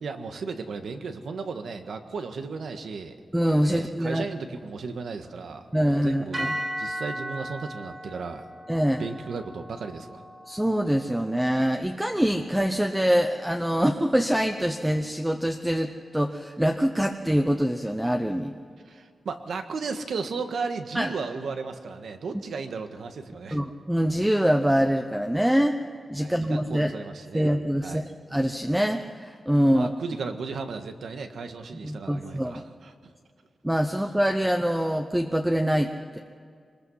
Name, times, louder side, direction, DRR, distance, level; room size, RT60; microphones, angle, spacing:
voice 1, 0.0-3.2 3.7-6.5 6.8-8.4 8.9-10.2 18.9-23.6 26.2-27.5 27.8-28.1 29.7-32.9, right 4 dB, 85° right, 6 dB, 1.6 m, -35 dB
voice 2, 3.3-4.2 5.7-6.5 8.7-9.0 10.5-18.5 20.9-21.1 23.5-25.8 26.1-26.9 27.3-28.0 28.3-29.9 31.8-32.6 33.6-36.2, equal, 5° right, 5 dB, 0.8 m, -24 dB
sound 1, 6.3-14.6, right 1 dB, 30° right, 3.6 m, -38 dB
25.0 x 21.0 x 5.7 m, 2.2 s
wide cardioid pair, 170°, 0 cm